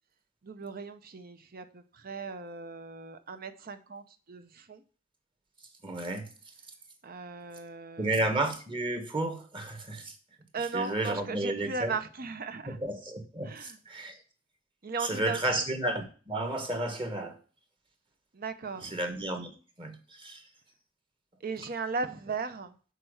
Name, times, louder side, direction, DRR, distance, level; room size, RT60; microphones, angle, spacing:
voice 1, 0.4-4.8 7.0-8.3 10.5-12.8 13.4-13.8 14.8-15.4 18.3-18.9 21.4-22.7, right 4 dB, 50° right, 0.7 m, -37 dB
voice 2, 5.8-6.3 8.0-10.1 10.7-12.0 12.7-14.2 15.0-17.4 18.8-19.5 19.8-20.4, right 1 dB, 25° right, 1.3 m, -32 dB
6.7 x 4.5 x 6.4 m
head